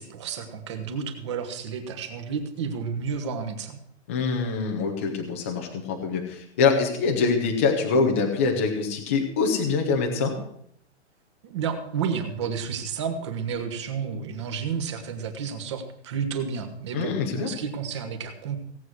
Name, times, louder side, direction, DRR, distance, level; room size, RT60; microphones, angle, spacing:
voice 1, 0.0-3.8 11.4-18.6, right 6 dB, 25° right, 7 dB, 1.3 m, -31 dB
voice 2, 4.1-10.3 16.9-17.5, left 4 dB, 10° left, 2 dB, 0.6 m, -24 dB
17.5 x 8.1 x 6.3 m, 0.69 s
hypercardioid pair, 180°, 35 cm